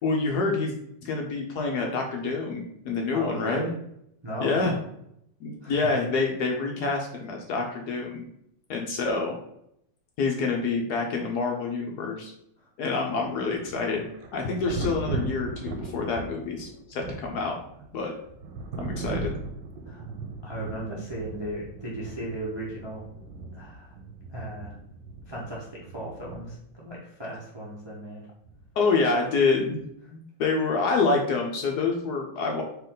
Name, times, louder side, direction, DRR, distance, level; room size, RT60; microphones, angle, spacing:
voice 1, 0.0-0.7 1.0-3.7 4.4-4.7 5.4-8.2 8.7-9.4 10.2-12.3 12.8-17.6 17.9-18.1 18.8-19.3 28.8-29.8 30.1-32.6, left 4 dB, 70° left, 1 dB, 1.1 m, -27 dB
voice 2, 3.1-3.7 4.2-4.7 5.6-5.9 12.6-12.7 19.9-20.1 20.4-23.0 23.5-24.0 24.3-24.7 25.3-28.2, right 1 dB, 30° right, -5 dB, 0.5 m, -36 dB
Thunder, 13.2-26.8 28.5-28.7, right 3 dB, 75° right, 1.3 m, -38 dB
4.5 x 2.9 x 3.8 m, 0.75 s
omnidirectional pair, 2.1 m